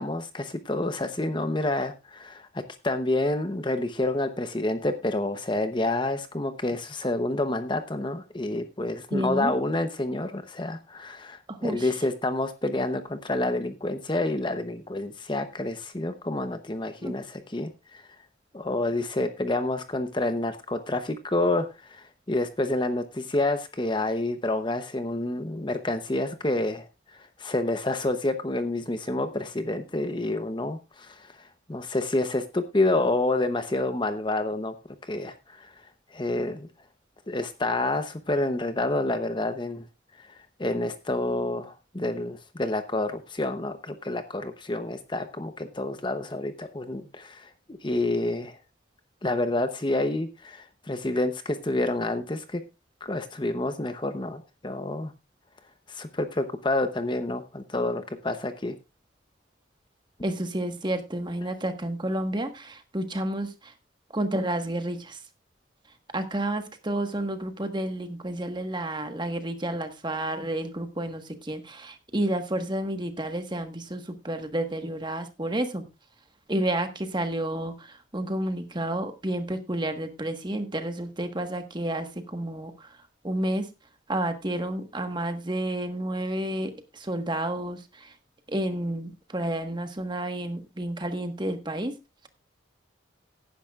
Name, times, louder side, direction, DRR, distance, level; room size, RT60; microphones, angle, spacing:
voice 1, 0.0-18.0 18.5-34.7 35.1-35.7 36.1-36.7 37.3-39.8 40.2-48.6 49.2-52.6 53.0-55.1 55.9-58.7, left 2 dB, 25° left, 9 dB, 0.8 m, -28 dB
voice 2, 9.1-9.5 11.5-11.9 17.0-17.2 60.2-63.7 64.1-65.2 66.1-75.8 76.5-83.0 83.2-83.7 84.1-88.1 88.5-91.9, right 1 dB, 20° right, 7 dB, 1.3 m, -30 dB
17.0 x 10.0 x 2.4 m, 0.25 s
head